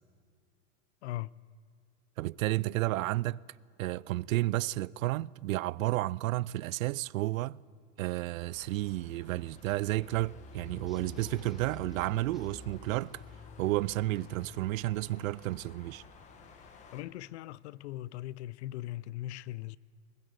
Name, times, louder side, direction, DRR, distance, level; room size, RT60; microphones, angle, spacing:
voice 1, 1.0-1.3 16.9-19.8, left 15 dB, 55° left, 0.5 m, -39 dB
voice 2, 2.2-3.4 3.8-7.6 8.0-13.2 13.6-16.0, right 17 dB, 85° right, 0.5 m, -32 dB
sound 1, 8.4-17.0, left 3 dB, 20° left, 1.1 m, -50 dB
sound 2, 10.9-13.7 14.1-14.2 14.4-14.5, right 1 dB, ahead, 0.6 m, -62 dB
22.5 x 20.5 x 8.0 m
supercardioid pair, 175°, 40 cm